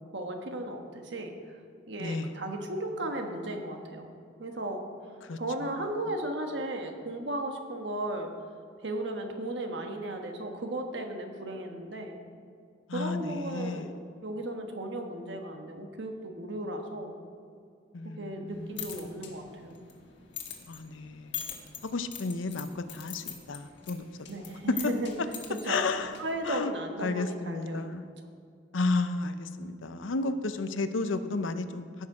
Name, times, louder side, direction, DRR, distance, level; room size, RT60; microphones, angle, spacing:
voice 1, 0.1-1.6 1.9-4.1 4.4-4.8 5.4-8.3 8.8-12.2 12.9-17.1 18.0-19.8 24.3-25.1 25.5-25.9 26.2-28.1, right 1 dB, 65° right, 4 dB, 1.3 m, -35 dB
voice 2, 2.0-2.3 5.2-5.7 12.9-13.9 17.9-19.2 20.7-21.4 21.8-24.1 24.4-24.8 25.7-26.1 26.4-26.7 27.0-28.0 28.7-31.8, left 3 dB, 85° left, 10 dB, 0.6 m, -32 dB
sound 1, 18.5-26.5, left 9 dB, 65° left, 1.5 m, -44 dB
17.0 x 6.5 x 4.9 m, 2.3 s
head